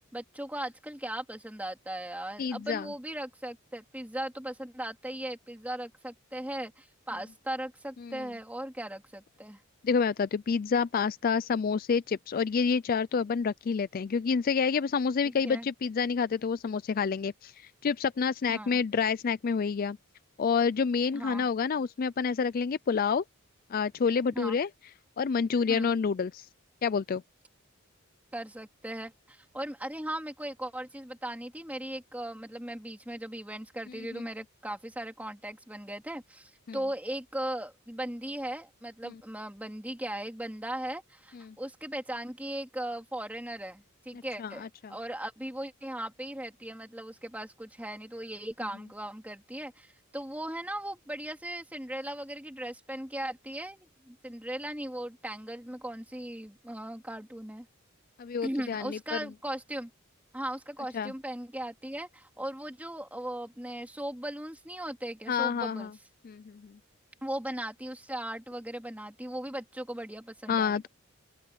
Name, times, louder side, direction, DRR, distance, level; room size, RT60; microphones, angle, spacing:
voice 1, 0.1-9.6 15.2-15.7 18.5-18.8 21.1-21.5 24.3-24.6 25.7-25.9 28.3-57.7 58.4-59.9 60.3-65.9 67.2-70.8, right 1 dB, 5° right, 3.0 m, -38 dB
voice 2, 2.4-2.9 8.0-8.2 9.8-20.0 20.4-23.2 23.7-24.7 25.2-26.5 26.8-27.2 34.1-34.3 36.7-36.8 39.0-39.1 41.3-41.5 44.1-44.9 58.2-59.2 60.9-61.1 65.3-65.9 66.2-66.7 70.5-70.9, left 5 dB, 40° left, 0.4 m, -28 dB
open air
head